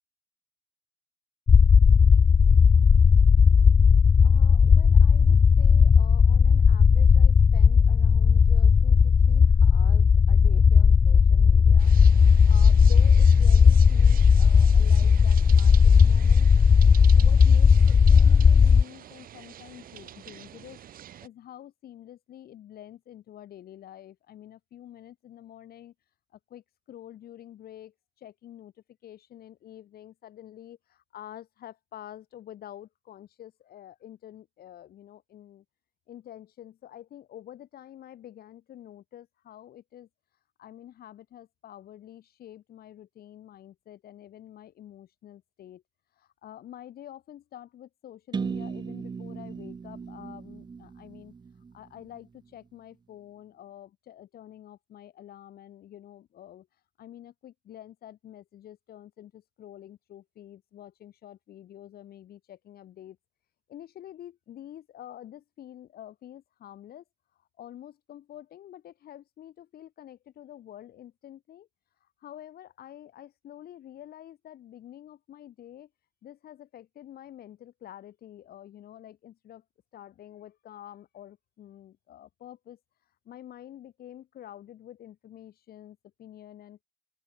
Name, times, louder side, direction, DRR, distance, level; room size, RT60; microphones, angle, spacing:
sound 1, 1.5-18.8, left 6 dB, 25° left, 0.5 m, -17 dB
voice 1, 4.2-16.5 16.9-20.8 21.2-25.9 26.3-28.7 29.0-35.6 36.1-40.1 40.6-45.8 46.2-51.3 51.7-56.7 57.0-63.2 63.7-67.0 67.4-71.7 72.2-75.9 76.2-79.6 79.9-82.8 83.2-86.8, left 11 dB, 85° left, 6.8 m, -47 dB
sound 2, 11.8-21.3, right 11 dB, 70° right, 1.8 m, -45 dB
sound 3, 48.3-52.2, right 5 dB, 30° right, 1.0 m, -37 dB
open air
wide cardioid pair, 165°, 15 cm